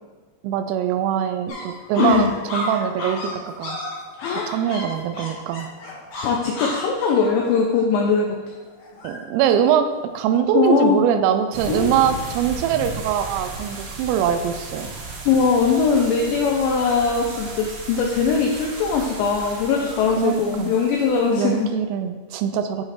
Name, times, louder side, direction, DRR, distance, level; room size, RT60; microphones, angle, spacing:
voice 1, 0.4-3.8 4.3-5.7 9.0-9.9 10.1-14.9 20.2-20.7 21.3-22.8, right 8 dB, 90° right, 8 dB, 3.2 m, -22 dB
sound 1, 1.5-10.9 11.4-11.5 11.7-12.4 12.6-13.3 13.8-14.1 14.4-20.9, left 1 dB, 65° left, 2.0 m, -36 dB
voice 2, 2.0-2.3 4.2-4.6 6.2-8.5 10.5-11.0 11.7-11.9 15.3-21.7, left 5 dB, 85° left, -1 dB, 2.5 m, -20 dB
sound 2, 11.5-21.5, right 4 dB, 70° right, 3.2 m, -35 dB
9.3 x 3.2 x 4.9 m, 1.4 s
omnidirectional pair, 5.8 m